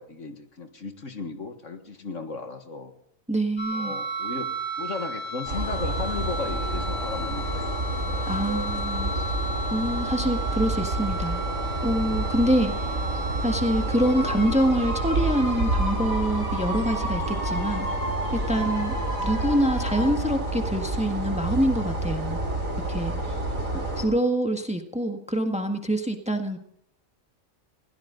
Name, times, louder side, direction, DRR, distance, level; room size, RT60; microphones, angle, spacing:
voice 1, 0.0-2.9 3.7-7.8 13.1-13.2 19.0-19.3 23.6-24.1, left 4 dB, 65° left, 7 dB, 2.0 m, -36 dB
voice 2, 3.3-3.9 8.3-9.1 9.7-11.4 11.8-12.9 13.4-17.9 18.5-18.9 19.2-22.4 22.9-23.1 23.7-26.6, equal, 5° right, 5 dB, 1.5 m, -25 dB
sound 1, 3.6-20.1, right 1 dB, 80° left, 5.0 m, -33 dB
sound 2, 5.5-24.1, right 2 dB, 75° right, 4.1 m, -29 dB
21.5 x 17.0 x 3.9 m, 0.68 s
omnidirectional pair, 1.4 m